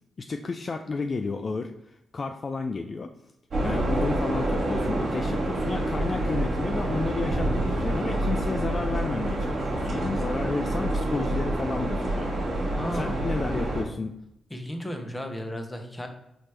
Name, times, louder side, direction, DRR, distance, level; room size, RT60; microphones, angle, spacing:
voice 1, 0.2-3.1 3.6-12.3 12.9-14.1, left 4 dB, 45° left, 6 dB, 0.3 m, -32 dB
sound 1, 3.5-13.8, right 1 dB, 55° right, 1.4 m, -27 dB
voice 2, 12.8-13.3 14.5-16.1, equal, 20° left, 5 dB, 0.9 m, -34 dB
4.1 x 3.2 x 3.1 m, 0.83 s
hypercardioid pair, 45°, 0 cm